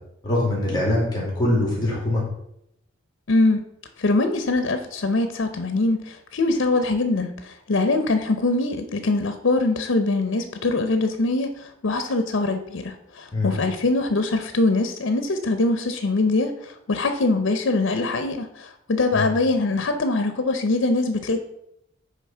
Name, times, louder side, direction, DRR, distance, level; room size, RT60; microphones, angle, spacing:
voice 1, 0.2-2.2 13.3-13.5 19.1-19.3, left 1 dB, 20° left, -4 dB, 2.1 m, -23 dB
voice 2, 3.3-3.7 4.0-21.4, left 2 dB, 80° left, 8 dB, 0.6 m, -23 dB
8.3 x 3.2 x 4.4 m, 0.78 s
head